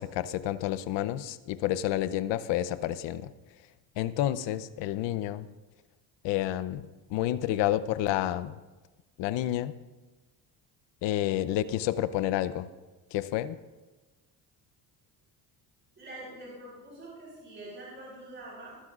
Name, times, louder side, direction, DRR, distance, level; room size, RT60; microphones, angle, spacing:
voice 1, 0.0-3.3 4.0-5.5 6.2-8.5 9.2-9.7 11.0-12.7 13.1-13.6, left 13 dB, 80° left, 14 dB, 0.8 m, -29 dB
voice 2, 16.0-18.8, right 1 dB, 25° right, -5 dB, 4.3 m, -45 dB
19.0 x 12.0 x 2.5 m, 1.2 s
cardioid pair, 105°, 43 cm